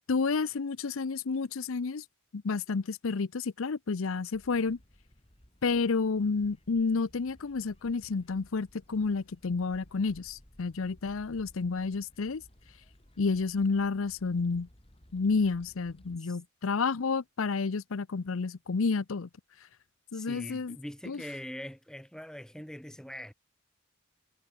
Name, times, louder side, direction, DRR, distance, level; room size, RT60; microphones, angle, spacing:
voice 1, 0.1-2.0 2.3-4.8 5.6-12.4 13.2-14.7 15.1-19.3 20.1-20.8 21.1-21.2, left 4 dB, 75° left, 0.6 m, -30 dB
sound 1, 4.3-16.2, equal, 25° left, 3.4 m, -59 dB
voice 2, 20.1-23.3, equal, 5° left, 0.7 m, -43 dB
head